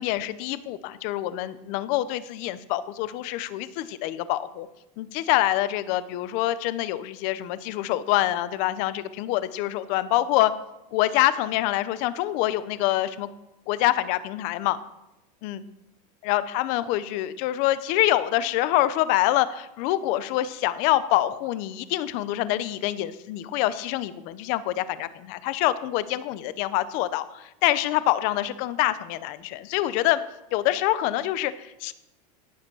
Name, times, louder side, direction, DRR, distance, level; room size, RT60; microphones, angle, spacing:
voice 1, 0.0-4.7 5.0-10.5 10.9-13.3 13.7-14.8 15.4-15.6 16.2-30.2 30.5-31.9, left 14 dB, 40° left, 15 dB, 0.8 m, -25 dB
17.0 x 8.0 x 6.2 m, 0.93 s
supercardioid pair, 175°, 20 cm